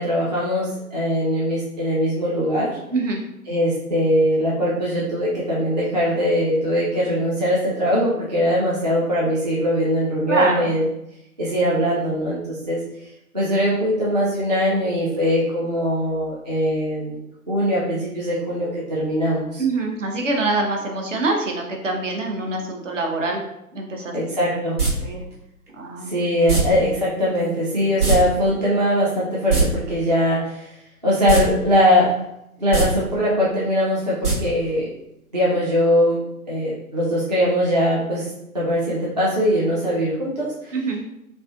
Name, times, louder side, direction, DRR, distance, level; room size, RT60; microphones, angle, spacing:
voice 1, 0.0-2.8 3.5-10.8 11.4-12.8 13.3-19.6 24.1-24.8 26.1-30.7 31.0-32.1 32.6-34.9 35.3-40.7, equal, 30° right, -7 dB, 0.4 m, -21 dB
voice 2, 2.9-3.2 10.3-10.8 19.6-23.4 23.7-25.2 25.7-26.2 40.7-41.0, right 2 dB, 55° right, 1 dB, 0.7 m, -25 dB
sound 1, 24.8-24.9 26.5-26.6 28.0-28.2 28.4-28.5 29.3-29.6 31.2-31.4 31.8-31.9 32.6-32.8 34.2-34.3 34.7-34.8, right 5 dB, 85° right, 1.4 m, -19 dB
3.1 x 2.5 x 2.4 m, 0.84 s
figure-of-eight pair, 130°, 45 cm